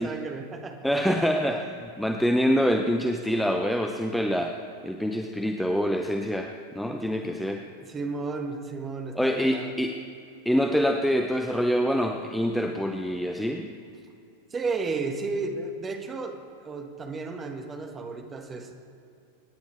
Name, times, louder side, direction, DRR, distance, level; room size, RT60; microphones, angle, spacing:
voice 1, 0.0-1.6 2.5-2.6 7.2-7.3 7.8-9.7 14.5-16.4 16.6-18.7, right 4 dB, 20° right, 4 dB, 1.6 m, -33 dB
voice 2, 0.8-1.7 2.0-4.5 4.8-7.6 9.2-9.9 10.5-13.7, equal, ahead, 4 dB, 0.7 m, -25 dB
25.5 x 10.0 x 3.4 m, 2.6 s
figure-of-eight pair, 90°, 0 cm